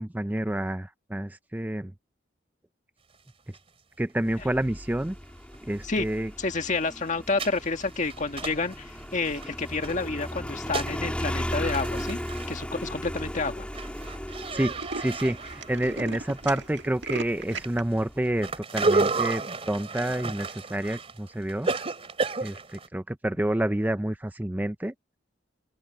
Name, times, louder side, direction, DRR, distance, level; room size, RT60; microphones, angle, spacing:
voice 1, 0.0-1.9 3.5-3.6 4.0-5.2 5.6-6.3 14.5-21.7 22.4-24.9, right 1 dB, 10° right, 0.5 m, -29 dB
sound 1, 3.5-3.6 4.1-4.2 5.5-5.6 6.0-6.1 6.4-9.9 10.3-11.0 11.3-11.4 11.5-12.5 12.9-13.3 13.6-16.9 17.1-22.9, right 3 dB, 35° right, 3.0 m, -32 dB
Motorcycle, 4.3-18.6, equal, 5° left, 2.8 m, -37 dB
voice 2, 6.4-12.2 12.5-13.7, left 3 dB, 45° left, 1.8 m, -29 dB
Tools, 11.8-12.2 12.8-12.9 13.1-13.2 13.4-13.6 13.9-14.1 14.3-17.8, right 3 dB, 75° right, 1.9 m, -37 dB
open air
head